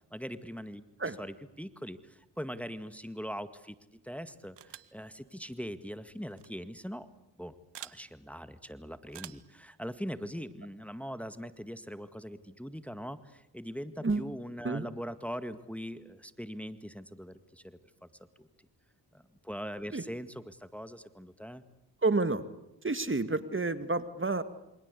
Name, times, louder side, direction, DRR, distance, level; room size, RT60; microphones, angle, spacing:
voice 1, 0.1-3.8 4.0-7.1 7.4-18.1 18.4-18.5 19.1-21.6, equal, 5° left, 11 dB, 1.9 m, -41 dB
sound 1, 4.6-5.0 6.3-6.5 7.7-8.0 9.1-9.5, right 12 dB, 90° right, 1.1 m, -47 dB
voice 2, 22.0-22.4 22.8-24.4, right 3 dB, 30° right, 12 dB, 2.0 m, -29 dB
28.0 x 25.0 x 8.4 m, 0.87 s
cardioid pair, 55°, 41 cm